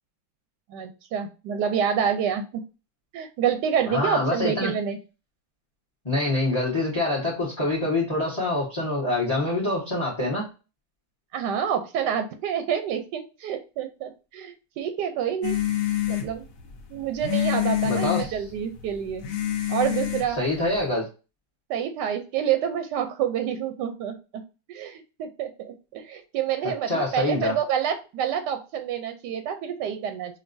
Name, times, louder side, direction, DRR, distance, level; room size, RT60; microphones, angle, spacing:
voice 1, 0.7-2.4 3.1-5.0 11.3-15.6 16.1-16.4 16.9-19.2 19.7-20.4 21.7-24.4 24.7-30.4, right 8 dB, 85° right, 8 dB, 1.2 m, -28 dB
voice 2, 3.9-4.7 6.0-10.5 17.8-18.3 20.4-21.0 26.9-27.5, left 2 dB, 20° left, -4 dB, 1.0 m, -25 dB
sound 1, 15.4-20.9, left 12 dB, 60° left, 1.0 m, -28 dB
5.3 x 2.6 x 2.6 m, 0.31 s
omnidirectional pair, 1.8 m